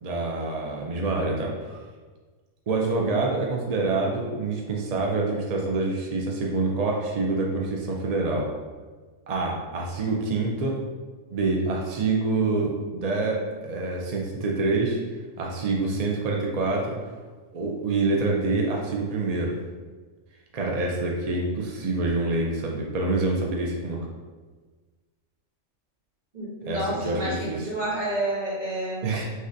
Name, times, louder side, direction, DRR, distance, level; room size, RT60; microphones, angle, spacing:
voice 1, 0.0-1.5 2.7-8.5 9.3-10.8 11.3-15.0 15.4-17.0 17.5-19.6 20.5-24.0 26.7-27.6 29.0-29.2, right 3 dB, 60° right, -1 dB, 0.4 m, -26 dB
voice 2, 26.3-29.2, right 1 dB, 35° right, -7 dB, 1.5 m, -30 dB
6.3 x 2.7 x 2.5 m, 1.4 s
omnidirectional pair, 1.4 m